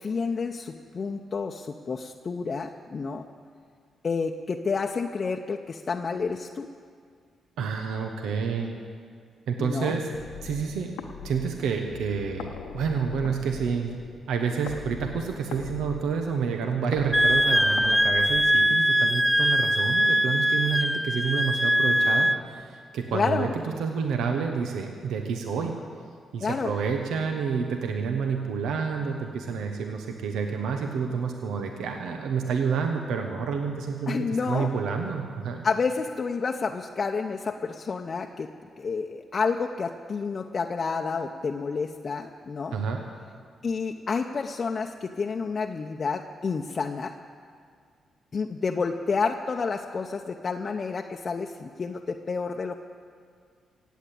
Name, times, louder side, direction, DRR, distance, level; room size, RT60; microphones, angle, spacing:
voice 1, 0.0-3.2 4.0-6.7 9.6-10.0 23.1-23.5 26.4-26.7 34.1-34.7 35.6-38.5 38.8-42.8 43.6-47.1 48.3-52.8, left 5 dB, 50° left, 3 dB, 0.7 m, -29 dB
voice 2, 7.6-8.8 9.5-10.1 10.4-10.9 11.2-13.9 14.3-25.7 26.3-35.6 42.7-43.0, right 6 dB, 80° right, 4 dB, 1.0 m, -29 dB
sound 1, 10.1-19.1, left 6 dB, 85° left, 0.9 m, -41 dB
Wind instrument woodwind instrument, 17.1-22.4, equal, ahead, 0.4 m, -22 dB
16.5 x 8.3 x 8.5 m, 2.1 s
supercardioid pair, 60°, 0 cm